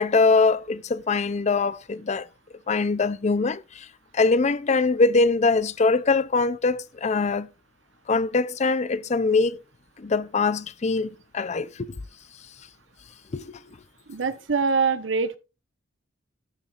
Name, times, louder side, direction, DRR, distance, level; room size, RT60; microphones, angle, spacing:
voice 1, 0.0-2.3 2.7-3.9 4.1-7.5 8.1-9.6 10.0-12.0 13.3-13.6, left 3 dB, 40° left, 0.5 m, -23 dB
voice 2, 14.1-15.4, right 5 dB, 85° right, 1.0 m, -24 dB
13.0 x 9.8 x 2.4 m
head